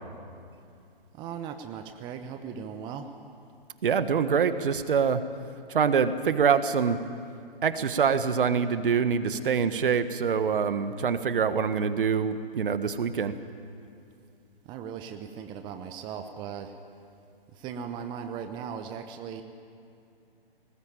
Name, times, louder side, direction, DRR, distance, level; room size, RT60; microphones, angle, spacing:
voice 1, 1.1-3.1 14.6-16.7 17.5-19.4, right 7 dB, 15° right, 7 dB, 0.9 m, -38 dB
voice 2, 3.8-5.2 5.7-7.0 7.6-13.4, right 6 dB, 60° right, 11 dB, 1.5 m, -25 dB
20.5 x 19.5 x 8.9 m, 2.5 s
hypercardioid pair, 140°, 29 cm